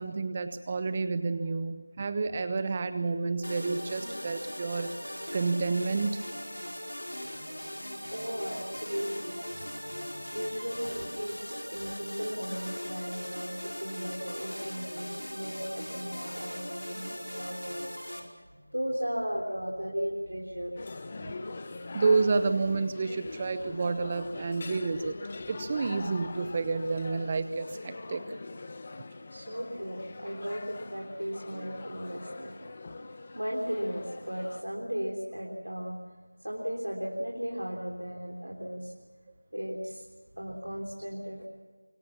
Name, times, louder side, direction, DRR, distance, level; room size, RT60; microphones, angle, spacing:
voice 1, 0.0-5.0 5.3-6.2 21.2-21.3 21.9-25.1 25.5-28.2, right 4 dB, 20° right, 11 dB, 0.7 m, -29 dB
sound 1, 3.4-18.2, equal, 85° left, 5.3 m, -39 dB
voice 2, 8.1-18.0 18.5-20.8 21.3-21.4 29.3-32.6 33.0-36.0 36.4-38.9 39.5-40.1 40.4-41.4, equal, 85° right, -1 dB, 3.8 m, -36 dB
sound 2, 20.8-34.6, left 3 dB, 25° left, 1.1 m, -43 dB
25.0 x 22.0 x 7.3 m, 1.4 s
figure-of-eight pair, 170°, 0 cm